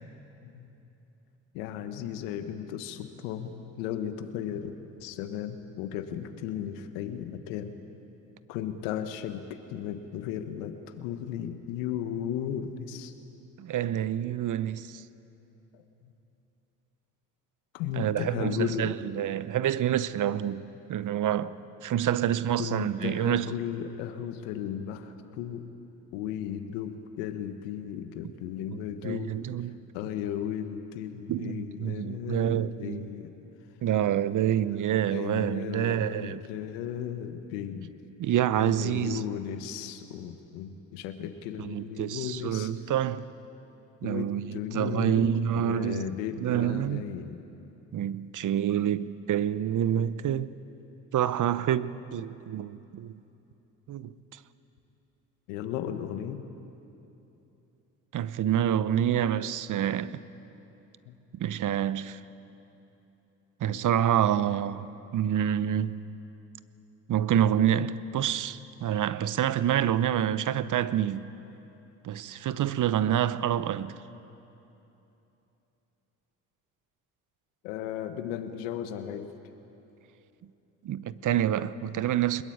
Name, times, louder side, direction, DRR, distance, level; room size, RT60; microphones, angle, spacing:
voice 1, 1.5-4.7 5.0-7.8 8.5-13.1 15.7-16.1 17.7-18.9 22.6-25.7 26.1-29.3 29.9-33.3 35.1-37.9 38.6-42.7 44.0-47.4 55.5-56.4 61.1-61.2 63.7-63.8 77.6-79.3, left 9 dB, 85° left, 1.4 m, -35 dB
voice 2, 13.6-15.0 18.0-23.5 28.7-29.8 31.3-33.1 33.8-36.4 38.2-39.2 41.6-43.3 44.0-46.1 46.4-47.1 47.9-50.5 51.1-53.2 53.9-54.1 58.1-60.2 61.3-62.2 63.6-66.0 67.1-71.3 72.0-74.0 80.8-82.4, right 10 dB, 50° right, 1.0 m, -27 dB
22.0 x 21.0 x 8.7 m
hypercardioid pair, 60°, 38 cm